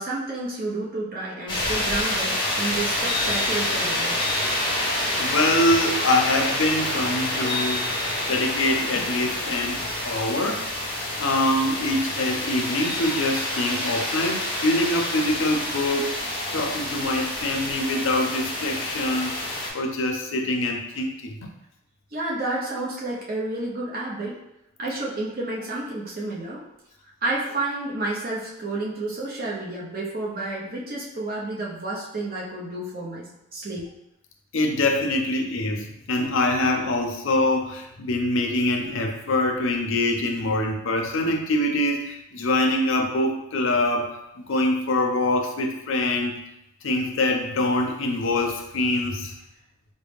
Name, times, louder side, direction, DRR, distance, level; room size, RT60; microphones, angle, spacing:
voice 1, 0.0-4.2 16.5-16.6 22.1-24.4 24.8-26.6 27.2-33.9, right 2 dB, 45° right, -5 dB, 0.8 m, -30 dB
sound 1, 1.5-19.7, left 1 dB, 25° left, 0.8 m, -27 dB
voice 2, 5.2-7.9 8.2-10.6 11.2-16.1 16.5-19.4 19.7-21.5 34.5-46.4 46.8-49.4, left 1 dB, 65° left, 3 dB, 0.5 m, -24 dB
3.9 x 2.1 x 3.4 m, 0.86 s
head